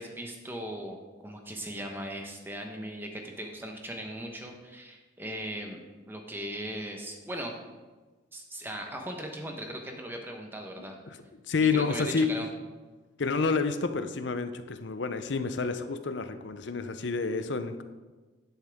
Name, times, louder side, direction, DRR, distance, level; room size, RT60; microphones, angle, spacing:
voice 1, 0.0-5.8 6.1-7.5 8.3-11.0 11.6-12.5, right 1 dB, 10° right, 2 dB, 1.1 m, -38 dB
voice 2, 11.1-12.4 13.2-17.8, left 4 dB, 70° left, 10 dB, 0.6 m, -29 dB
11.0 x 8.1 x 3.6 m, 1.3 s
head